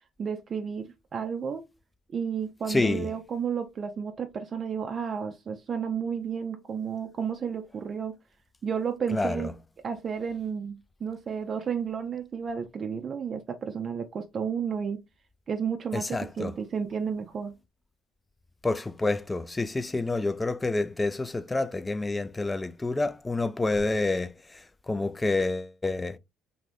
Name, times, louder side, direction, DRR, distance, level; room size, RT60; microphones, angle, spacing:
voice 1, 0.2-1.7 2.1-8.1 8.6-9.5 9.8-15.0 15.5-17.6, right 6 dB, 45° right, 0.4 m, -32 dB
voice 2, 2.7-3.1 9.1-9.5 15.9-16.5 18.6-26.2, left 2 dB, 20° left, 0.4 m, -28 dB
2.6 x 2.5 x 3.3 m
supercardioid pair, 70°, 0 cm